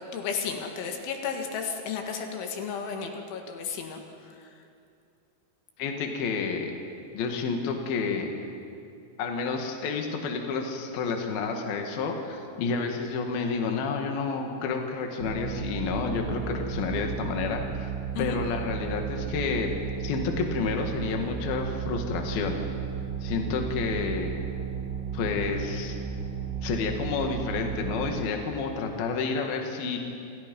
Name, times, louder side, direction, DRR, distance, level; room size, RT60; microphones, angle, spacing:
voice 1, 0.0-4.0 18.2-18.4, left 6 dB, 80° left, 3 dB, 4.4 m, -33 dB
voice 2, 5.8-6.7 7.1-8.3 9.2-17.9 18.2-19.7 20.0-22.6 23.2-24.3 25.1-26.0 26.6-30.0, left 5 dB, 60° left, 3 dB, 3.5 m, -30 dB
sound 1, 15.2-28.2, right 7 dB, 55° right, 2.3 m, -34 dB
29.0 x 28.0 x 5.5 m, 2.5 s
omnidirectional pair, 5.4 m